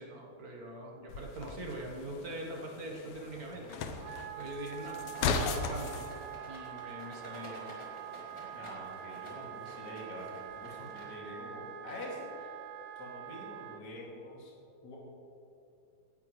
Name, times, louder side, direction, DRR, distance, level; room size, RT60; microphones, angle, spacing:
voice 1, 0.0-3.8 4.4-5.9 6.5-7.7, right 1 dB, 55° right, -1 dB, 1.0 m, -43 dB
sound 1, 1.1-6.1, left 5 dB, 75° left, 1.3 m, -37 dB
Wind instrument woodwind instrument, 3.9-13.8, right 11 dB, 70° right, 2.1 m, -45 dB
Rattle, 4.7-11.4, equal, 10° left, 2.3 m, -51 dB
voice 2, 8.5-12.6 13.0-14.5 14.8-15.0, left 1 dB, 35° left, -4 dB, 2.8 m, -46 dB
18.0 x 12.5 x 3.3 m, 2.7 s
omnidirectional pair, 3.6 m